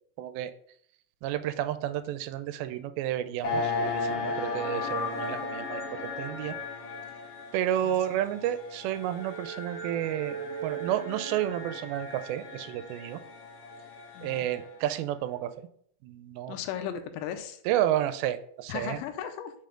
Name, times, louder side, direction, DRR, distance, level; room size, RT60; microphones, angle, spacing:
voice 1, 0.2-0.5 1.2-6.6 7.5-10.4 10.6-13.2 14.2-15.5 16.0-16.6 17.7-19.0, right 12 dB, 85° right, 10 dB, 2.4 m, -31 dB
sound 1, 3.4-14.8, left 2 dB, 60° left, 1.7 m, -36 dB
voice 2, 7.8-8.2 14.1-14.5 16.5-17.6 18.7-19.5, left 9 dB, 80° left, 8 dB, 2.3 m, -36 dB
5.6 x 5.1 x 3.7 m, 0.64 s
omnidirectional pair, 4.3 m